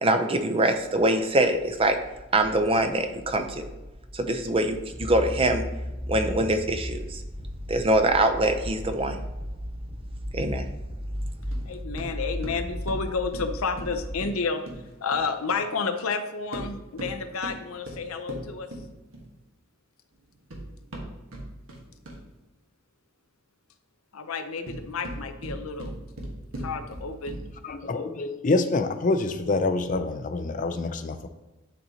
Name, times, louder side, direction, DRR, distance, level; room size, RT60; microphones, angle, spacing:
voice 1, 0.0-2.0 2.3-3.6 4.1-5.6 6.1-7.2 7.7-9.2 10.3-10.7, right 1 dB, 25° right, 7 dB, 0.5 m, -23 dB
sound 1, 0.9-14.2, equal, 20° left, 1.0 m, -41 dB
sound 2, 4.9-12.9, equal, 5° right, 1.3 m, -35 dB
sound 3, 11.5-15.7 16.4-19.4 20.2-22.4 24.4-27.7, right 1 dB, 75° right, 1.3 m, -39 dB
voice 2, 11.6-14.6 15.0-18.7 24.1-26.0 26.6-27.4, left 4 dB, 85° left, 8 dB, 0.6 m, -30 dB
voice 3, 27.6-31.3, left 3 dB, 40° left, 9 dB, 0.5 m, -26 dB
10.5 x 4.0 x 2.8 m, 1.1 s
head